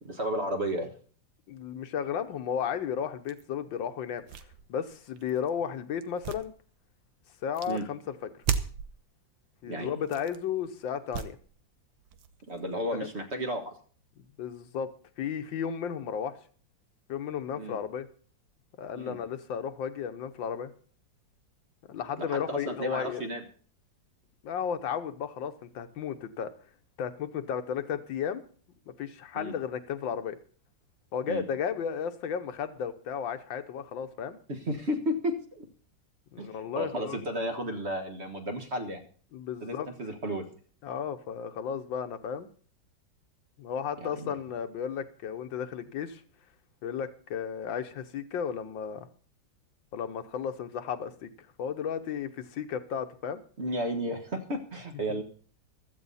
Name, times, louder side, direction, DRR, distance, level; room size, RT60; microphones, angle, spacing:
voice 1, 0.0-0.9 7.7-7.8 9.6-9.9 12.5-13.7 17.6-17.8 18.9-19.2 22.2-23.4 29.3-29.5 31.3-31.5 34.5-35.6 36.4-39.1 39.6-40.5 44.0-44.3 53.6-55.2, equal, 35° right, 5 dB, 1.6 m, -33 dB
voice 2, 1.5-4.2 4.7-6.5 7.4-8.3 9.6-11.4 14.2-14.9 15.2-16.4 17.1-18.1 18.8-20.7 21.9-23.3 24.4-26.5 27.0-28.4 28.9-30.4 31.1-34.4 36.3-37.2 39.3-39.9 40.8-42.5 43.6-46.2 46.8-49.1 49.9-53.4 55.1-55.2, left 7 dB, 80° left, 9 dB, 1.7 m, -34 dB
sound 1, 3.3-3.4 4.1-5.5 6.0-7.1 7.5-7.8 8.4-9.0 10.0-10.5 11.1-11.6 12.0-13.2, right 8 dB, 85° right, 1.7 m, -36 dB
15.5 x 13.0 x 4.1 m, 0.43 s
omnidirectional pair, 2.0 m